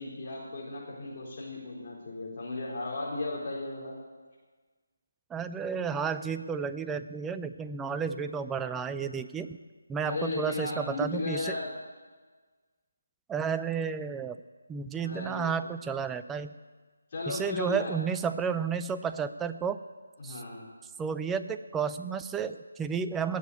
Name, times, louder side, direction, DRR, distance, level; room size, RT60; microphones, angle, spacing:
voice 1, 0.0-4.0 10.0-11.8 15.0-15.5 17.1-17.9 20.2-20.7, left 2 dB, 40° left, -5 dB, 4.0 m, -35 dB
voice 2, 5.3-9.6 9.9-11.6 13.3-14.4 14.7-16.5 17.3-19.8 20.2-20.4 21.0-23.4, right 6 dB, 10° right, 10 dB, 0.4 m, -32 dB
18.5 x 6.9 x 8.5 m, 1.4 s
figure-of-eight pair, 155°, 0 cm